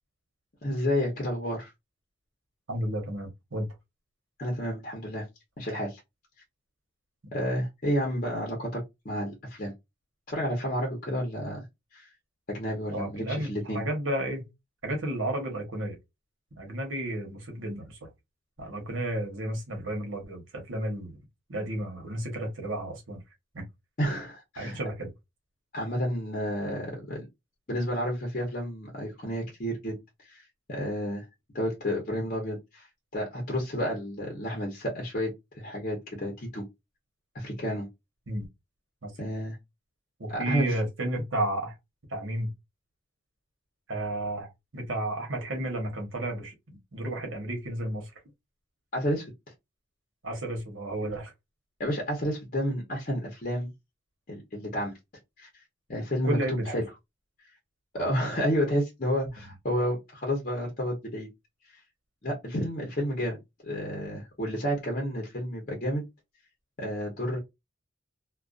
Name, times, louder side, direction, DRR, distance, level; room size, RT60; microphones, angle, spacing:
voice 1, 0.6-1.7 4.4-5.3 5.6-6.0 7.3-9.7 10.3-11.6 11.9-12.1 12.5-13.8 24.0-24.8 25.7-27.3 27.7-30.0 30.3-30.4 30.7-31.2 31.5-32.9 33.1-36.6 37.3-37.9 39.2-39.6 40.3-40.7 48.9-49.3 51.8-53.7 54.3-54.9 55.4-55.5 55.9-56.4 56.7-56.8 57.9-61.3 62.2-66.0 66.8-67.4, equal, 45° left, 0.7 m, -30 dB
voice 2, 2.7-3.7 12.9-14.5 14.8-16.0 16.6-18.1 18.6-21.2 21.5-23.2 23.5-23.6 24.6-25.1 38.3-38.5 39.0-39.1 40.2-41.7 42.1-42.5 43.9-46.5 46.9-48.1 50.2-51.3 56.2-56.7 58.0-58.1, right 1 dB, 85° right, 1.1 m, -32 dB
2.4 x 2.3 x 2.4 m
head